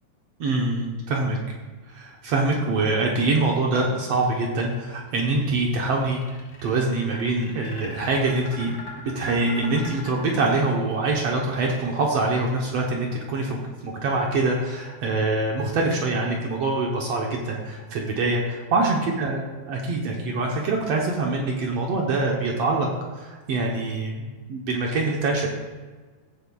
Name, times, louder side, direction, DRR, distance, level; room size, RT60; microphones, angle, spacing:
voice 1, 0.4-1.4 1.9-8.7 9.0-22.9 23.2-25.5, right 2 dB, 65° right, -1 dB, 1.6 m, -24 dB
sound 1, 6.0-11.1, left 2 dB, 40° left, 1.6 m, -41 dB
16.0 x 7.6 x 2.3 m, 1.3 s
omnidirectional pair, 3.8 m